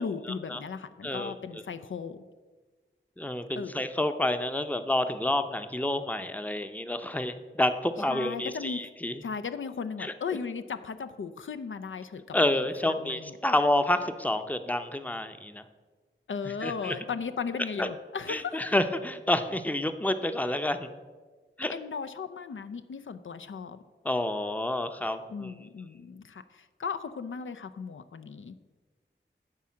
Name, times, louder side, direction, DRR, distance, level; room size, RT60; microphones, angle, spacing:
voice 1, 0.0-2.2 3.6-3.7 8.1-8.8 9.2-12.5 12.9-13.4 16.3-18.7 21.7-23.8 25.3-28.6, left 5 dB, 75° left, 11 dB, 0.4 m, -36 dB
voice 2, 1.0-1.3 3.2-9.2 10.0-10.1 12.3-15.6 16.6-17.0 17.8-17.9 18.3-20.9 21.6-21.7 24.0-25.5, left 1 dB, 10° left, 9 dB, 0.6 m, -29 dB
10.0 x 3.7 x 7.3 m, 1.4 s
wide cardioid pair, 45°, 20 cm